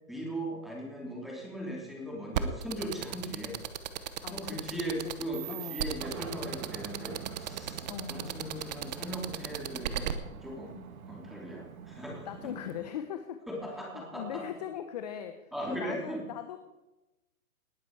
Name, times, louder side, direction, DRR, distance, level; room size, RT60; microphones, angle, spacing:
voice 1, 0.1-3.6 4.3-10.1 10.4-10.8 11.1-12.5 13.5-14.4 15.5-16.2, equal, ahead, -3 dB, 3.0 m, -39 dB
sound 1, 2.3-10.1, right 11 dB, 30° right, 0.8 m, -34 dB
voice 2, 4.2-5.2 5.5-5.9 7.9-8.4 12.2-13.4 13.9-16.6, left 10 dB, 30° left, 8 dB, 0.8 m, -40 dB
Aircraft, 6.0-12.8, right 7 dB, 65° right, 1.7 m, -46 dB
19.0 x 9.8 x 4.7 m, 1.0 s
hypercardioid pair, 155°, 44 cm